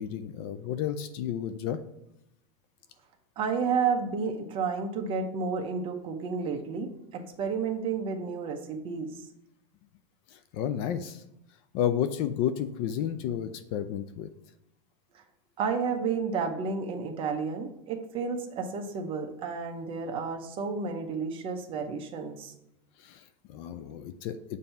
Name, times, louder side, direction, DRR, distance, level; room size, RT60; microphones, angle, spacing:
voice 1, 0.0-1.8 10.3-11.2 11.7-14.3 23.0-24.6, left 9 dB, 45° left, 11 dB, 0.4 m, -32 dB
voice 2, 3.4-9.1 15.6-22.5, right 5 dB, 30° right, 5 dB, 0.7 m, -31 dB
7.1 x 2.7 x 5.6 m, 0.84 s
supercardioid pair, 155°, 19 cm